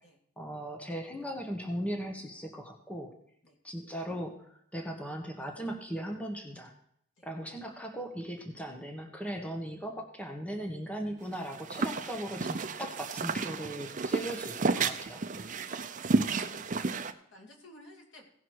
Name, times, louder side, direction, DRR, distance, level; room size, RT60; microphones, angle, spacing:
voice 1, 0.4-3.1 3.6-4.4 4.7-6.7 7.2-15.2, right 1 dB, 5° left, 3 dB, 1.2 m, -38 dB
sound 1, 11.3-17.1, right 4 dB, 40° right, 0.6 m, -32 dB
voice 2, 15.3-15.7 16.2-17.0 17.3-18.3, equal, 75° left, 0 dB, 2.5 m, -52 dB
17.0 x 6.0 x 4.7 m, 0.69 s
head